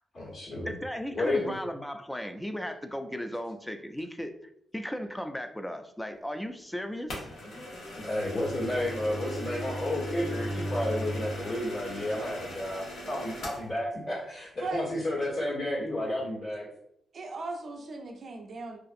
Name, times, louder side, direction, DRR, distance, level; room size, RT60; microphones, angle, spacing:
voice 1, 0.1-0.7 1.1-1.5 8.0-16.7, left 1 dB, 65° left, -6 dB, 1.3 m, -31 dB
voice 2, 0.7-4.3 4.7-7.3, equal, 10° left, 7 dB, 0.3 m, -36 dB
sound 1, 7.1-13.7, equal, 90° left, 0.9 m, -41 dB
Bowed string instrument, 7.9-11.6, equal, 40° left, 0.9 m, -37 dB
voice 3, 17.1-18.8, right 3 dB, 55° right, 2 dB, 0.4 m, -37 dB
2.5 x 2.4 x 2.5 m, 0.73 s
cardioid pair, 65°, 0 cm